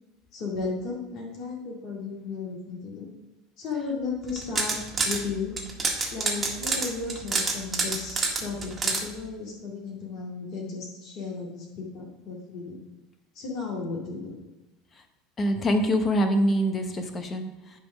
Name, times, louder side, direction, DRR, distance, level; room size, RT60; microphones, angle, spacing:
voice 1, 0.3-3.1 3.6-4.8 5.0-5.5 6.1-12.8 13.3-14.3, left 4 dB, 45° left, -3 dB, 2.2 m, -34 dB
sound 1, 4.3-5.2 5.6-9.0, right 3 dB, 25° right, 1.7 m, -27 dB
voice 2, 15.4-17.8, equal, 25° left, 7 dB, 1.0 m, -25 dB
10.0 x 3.6 x 5.0 m, 1.1 s
figure-of-eight pair, 75°, 0 cm